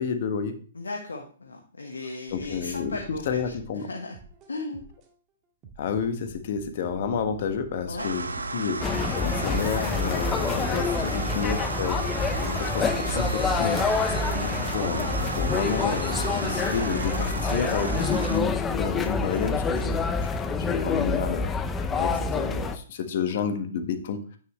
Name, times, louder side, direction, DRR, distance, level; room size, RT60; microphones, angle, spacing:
voice 1, 0.0-0.6 2.3-3.0 3.3-3.9 5.8-8.3 8.5-12.0 12.3-20.3 20.6-21.5 22.0-24.4, left 6 dB, 55° left, 7 dB, 1.3 m, -30 dB
voice 2, 0.7-4.2 4.5-4.8 7.9-8.1 11.2-11.5 14.3-14.5, left 3 dB, 85° left, 1 dB, 1.2 m, -36 dB
sound 1, 2.3-5.1 5.6-9.9 10.4-14.7 15.2-19.5 20.0-21.1, right 4 dB, 30° right, 1.8 m, -48 dB
sound 2, 8.0-18.4, right 3 dB, 85° right, 0.8 m, -33 dB
sound 3, 8.8-22.8, left 4 dB, 15° left, 0.7 m, -27 dB
9.4 x 6.4 x 3.1 m, 0.44 s
hypercardioid pair, 125°, 0 cm